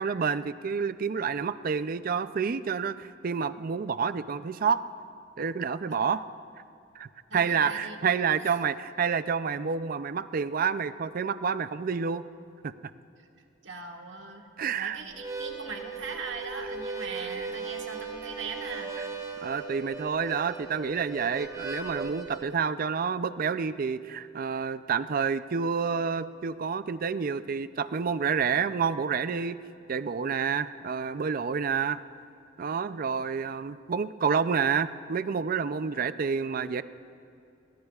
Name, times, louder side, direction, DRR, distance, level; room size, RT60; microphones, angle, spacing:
voice 1, 0.0-4.8 5.4-6.2 7.0-12.2 12.6-12.7 14.6-15.0 19.4-29.6 29.9-32.0 32.6-36.8, right 6 dB, 50° right, 14 dB, 0.4 m, -29 dB
voice 2, 7.3-8.6 13.2-13.3 13.6-14.5 14.7-18.9, right 4 dB, 70° right, 2 dB, 1.5 m, -40 dB
Harmonica, 15.1-22.5, right 4 dB, 20° right, 1.2 m, -38 dB
21.5 x 20.5 x 2.4 m, 2.6 s
head